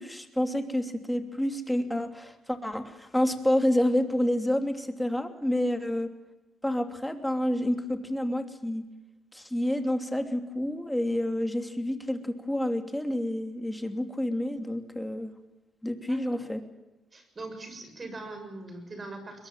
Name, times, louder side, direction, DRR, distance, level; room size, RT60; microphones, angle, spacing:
voice 1, 0.0-6.1 6.6-8.8 9.3-15.3 15.8-16.6, left 1 dB, 5° left, 6 dB, 2.9 m, -29 dB
voice 2, 16.1-16.4 17.1-19.5, right 2 dB, 35° right, 7 dB, 7.0 m, -41 dB
22.0 x 22.0 x 7.4 m, 1.0 s
cardioid pair, 90°, 0 cm